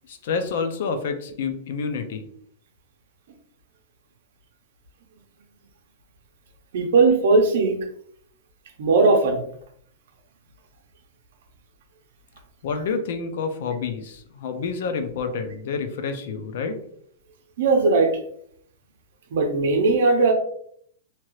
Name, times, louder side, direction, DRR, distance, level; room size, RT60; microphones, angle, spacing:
voice 1, 0.1-2.2 12.6-16.8, left 5 dB, 55° left, 7 dB, 0.4 m, -28 dB
voice 2, 6.7-7.8 8.8-9.4 17.6-18.1 19.3-20.3, right 3 dB, 60° right, 4 dB, 0.7 m, -18 dB
2.9 x 2.4 x 3.1 m, 0.65 s
supercardioid pair, 175°, 0 cm